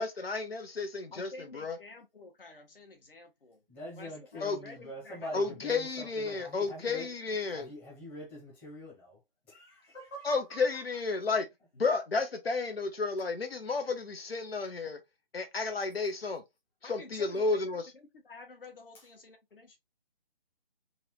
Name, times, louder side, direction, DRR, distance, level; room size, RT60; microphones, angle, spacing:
voice 1, 0.0-1.8 4.4-4.6 5.3-7.7 10.2-11.5 11.7-15.0 15.3-16.4 16.8-17.8, left 4 dB, 85° left, 1.0 m, -32 dB
voice 2, 1.1-3.6 4.0-6.1 16.8-17.8 18.1-19.8, left 3 dB, 70° left, 1.6 m, -51 dB
voice 3, 3.7-7.1 7.5-9.2 9.5-10.8, equal, 5° left, 0.7 m, -44 dB
4.0 x 2.6 x 3.0 m
figure-of-eight pair, 155°, 29 cm